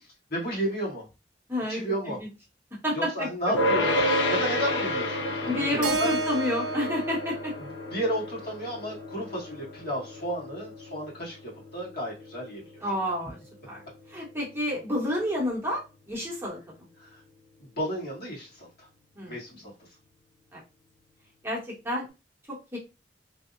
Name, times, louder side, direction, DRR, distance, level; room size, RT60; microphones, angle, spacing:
voice 1, 0.3-1.1 1.7-2.2 2.9-3.9 4.3-6.1 7.6-12.6 17.0-17.1 17.6-18.9 19.2-19.5 19.8-19.9, equal, 60° left, -5 dB, 1.3 m, -32 dB
voice 2, 1.5-2.1 2.7-3.3 5.5-7.5 12.8-13.4 13.7-13.8 14.1-15.8 16.1-16.6 19.2-19.3 20.5-20.6 21.4-22.1 22.5-22.8, left 1 dB, 15° right, -4 dB, 0.8 m, -29 dB
sound 1, 3.5-14.9, left 1 dB, 85° left, 0.6 m, -31 dB
Keyboard (musical), 5.8-10.0, right 4 dB, 80° right, 0.5 m, -34 dB
2.6 x 2.0 x 2.4 m, 0.28 s
head